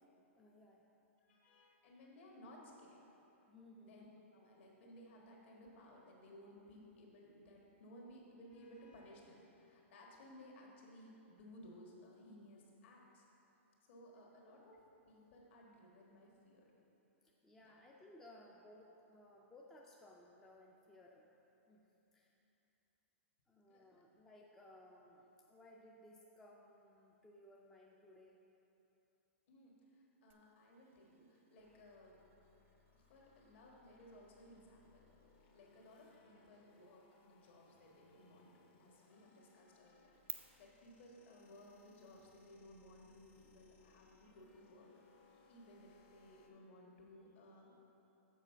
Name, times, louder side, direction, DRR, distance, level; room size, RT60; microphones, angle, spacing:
voice 1, 0.4-0.8 3.5-4.1 17.2-21.3 21.7-21.8 22.1-22.3 23.5-28.4 37.1-37.2, left 1 dB, 5° left, -2 dB, 0.4 m, -61 dB
voice 2, 1.3-3.0 3.8-13.2 13.9-14.8 15.1-16.7 17.7-17.8 23.7-24.0 29.5-29.7 30.2-32.2 32.9-35.1 35.5-44.9 45.5-47.7, left 1 dB, 60° left, -2 dB, 1.5 m, -59 dB
sound 1, 30.3-40.3, right 12 dB, 70° right, 0.7 m, -59 dB
sound 2, 31.6-46.5, left 4 dB, 40° left, 0.7 m, -70 dB
7.3 x 4.3 x 5.6 m, 3.0 s
hypercardioid pair, 155°, 7 cm